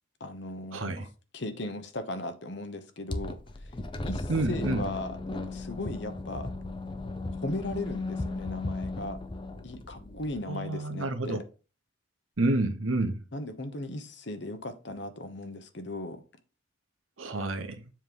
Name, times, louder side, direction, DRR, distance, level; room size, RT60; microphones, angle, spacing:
voice 1, 0.2-1.1 1.3-3.4 4.0-6.5 7.3-9.2 9.6-11.4 13.3-16.2, left 1 dB, 60° left, 0.9 m, -37 dB
voice 2, 0.7-1.1 4.3-4.9 10.5-11.4 12.4-13.2 17.2-17.9, right 2 dB, 90° right, 1.1 m, -29 dB
sound 1, 3.1-10.4, left 2 dB, 25° left, 0.6 m, -36 dB
7.4 x 3.2 x 5.3 m
head